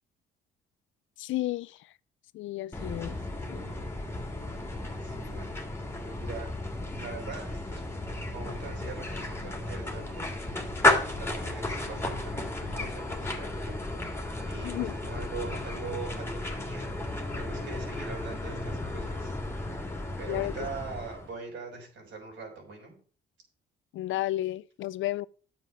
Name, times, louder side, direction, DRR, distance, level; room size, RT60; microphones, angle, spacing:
voice 1, 1.2-1.8 2.3-3.2 3.5-3.6 14.6-14.9 20.3-20.5 23.9-25.3, left 15 dB, 75° left, 0.5 m, -32 dB
sound 1, 2.7-21.3, left 2 dB, 10° left, 2.7 m, -33 dB
voice 2, 5.0-5.6 6.0-6.5 7.0-7.8 8.3-13.8 14.0-16.9 17.3-19.4 20.2-23.0, right 4 dB, 70° right, 5.9 m, -42 dB
9.5 x 7.5 x 6.1 m
cardioid pair, 90°, 20 cm